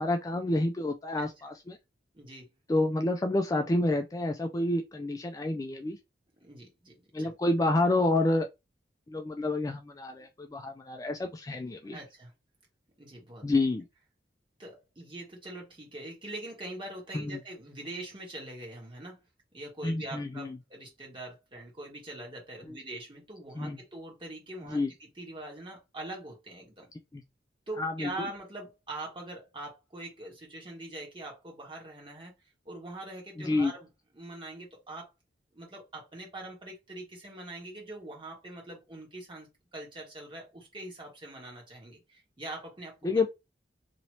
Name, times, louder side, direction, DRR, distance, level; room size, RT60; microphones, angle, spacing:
voice 1, 0.0-1.8 2.7-6.0 7.1-8.5 9.1-12.0 13.4-13.8 17.1-17.4 19.8-20.6 22.7-22.8 23.6-23.8 24.7-24.9 27.1-27.2 27.8-28.1 33.4-33.7 43.0-43.3, left 2 dB, 20° left, 0.3 m, -29 dB
voice 2, 2.1-2.5 6.4-7.3 10.2-10.3 11.8-12.3 13.0-13.5 14.6-19.2 19.5-26.9 27.7-32.3 32.6-33.9 34.1-35.1 35.5-43.1, right 2 dB, 30° right, 1.4 m, -43 dB
2.9 x 2.8 x 2.9 m
head